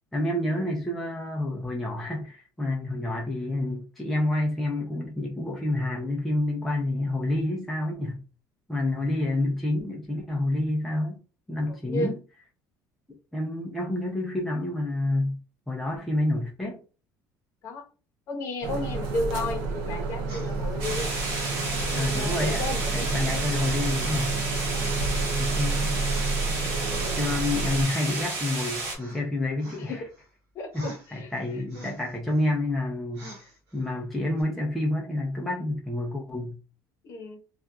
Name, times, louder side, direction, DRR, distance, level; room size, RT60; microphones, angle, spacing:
voice 1, 0.1-8.2 8.7-11.2 11.5-12.2 13.3-15.4 15.7-16.8 22.0-22.6 22.9-24.3 25.4-25.9 27.2-30.0 30.7-36.6, left 1 dB, ahead, 0.5 m, -28 dB
voice 2, 11.6-12.1 17.6-17.8 18.3-21.1 21.9-23.1 25.0-25.3 26.9-27.2 29.8-30.0 30.5-31.3 37.0-37.4, left 2 dB, 40° left, 0.8 m, -33 dB
sound 1, 18.6-27.8, right 3 dB, 85° right, 0.8 m, -29 dB
sound 2, 20.3-21.2 21.6-23.3 23.6-24.2 24.7-25.3 25.7-26.3 26.8-28.6 28.9-29.2 29.6-30.3 30.7-32.5 33.1-33.8 34.4-34.5, right 2 dB, 50° right, 1.7 m, -47 dB
sound 3, 20.8-29.0, right 3 dB, 70° right, 1.3 m, -32 dB
3.9 x 2.3 x 2.3 m
cardioid pair, 180°, 8 cm